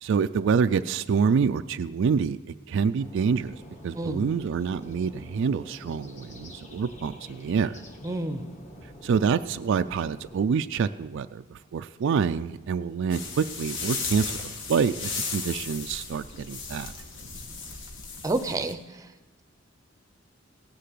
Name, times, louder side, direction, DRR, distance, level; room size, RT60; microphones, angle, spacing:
voice 1, 0.0-2.4 2.7-3.6 3.8-7.7 9.0-11.4 11.7-14.2 14.7-16.9, right 6 dB, 65° right, 10 dB, 0.3 m, -26 dB
sound 1, 3.0-10.4, equal, 35° left, 1.4 m, -47 dB
voice 2, 3.9-4.3 8.0-8.4 18.2-18.8, right 2 dB, 15° right, 10 dB, 0.6 m, -28 dB
sound 2, 13.1-18.7, left 4 dB, 65° left, 1.5 m, -35 dB
17.0 x 6.7 x 7.7 m, 1.2 s
head